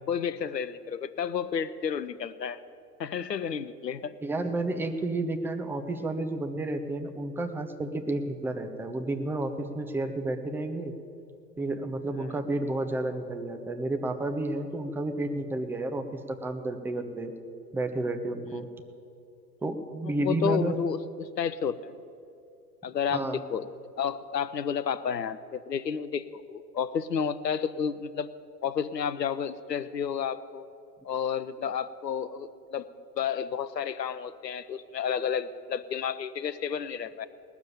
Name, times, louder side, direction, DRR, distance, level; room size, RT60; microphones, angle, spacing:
voice 1, 0.1-2.6 3.0-4.1 18.5-18.6 20.0-22.0 22.8-23.7 24.0-28.3 28.6-30.7 31.0-32.9 33.2-37.3, left 7 dB, 85° left, 15 dB, 0.6 m, -31 dB
voice 2, 4.2-10.9 11.6-17.3 17.7-18.7 19.6-20.8 23.1-23.4, right 2 dB, 5° right, 7 dB, 0.5 m, -31 dB
19.0 x 7.0 x 8.6 m, 2.6 s
figure-of-eight pair, 95°, 48 cm